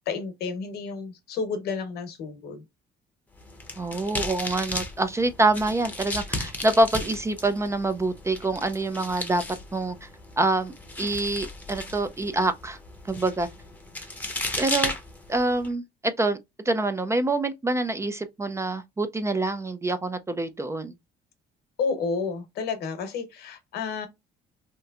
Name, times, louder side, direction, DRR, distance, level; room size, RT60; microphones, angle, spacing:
voice 1, 0.1-2.6 21.8-24.1, left 5 dB, 75° left, 1.0 m, -31 dB
sound 1, 3.3-15.7, left 2 dB, 10° left, 0.8 m, -35 dB
voice 2, 3.8-9.4 9.7-10.1 10.4-10.7 11.0-12.8 13.1-13.5 14.6-14.9 15.3-16.4 16.7-20.9, right 2 dB, 15° right, 0.4 m, -26 dB
3.1 x 3.0 x 2.3 m
cardioid pair, 110°, 17 cm